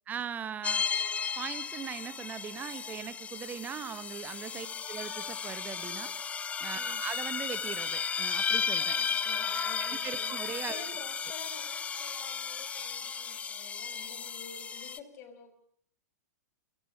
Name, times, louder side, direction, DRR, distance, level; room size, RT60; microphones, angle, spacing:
voice 1, 0.1-0.8 1.4-6.1 6.6-9.0 9.5-10.8, right 8 dB, 20° right, 14 dB, 1.3 m, -40 dB
sound 1, 0.6-15.0, left 6 dB, 15° left, 1.2 m, -34 dB
voice 2, 6.7-7.1 8.9-10.3 10.7-15.5, left 6 dB, 35° left, 9 dB, 5.8 m, -50 dB
28.5 x 18.5 x 8.9 m, 0.65 s
figure-of-eight pair, 105°, 9 cm